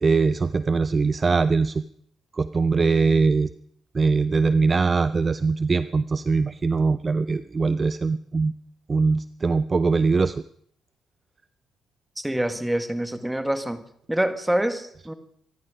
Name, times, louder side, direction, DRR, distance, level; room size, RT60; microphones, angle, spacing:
voice 1, 0.0-1.8 2.3-3.5 3.9-8.5 8.9-10.4, right 4 dB, 30° right, 13 dB, 0.5 m, -22 dB
voice 2, 12.2-13.8 14.1-15.1, right 1 dB, 5° right, 9 dB, 1.8 m, -26 dB
25.5 x 10.5 x 5.1 m, 0.64 s
cardioid pair, 90°, 0 cm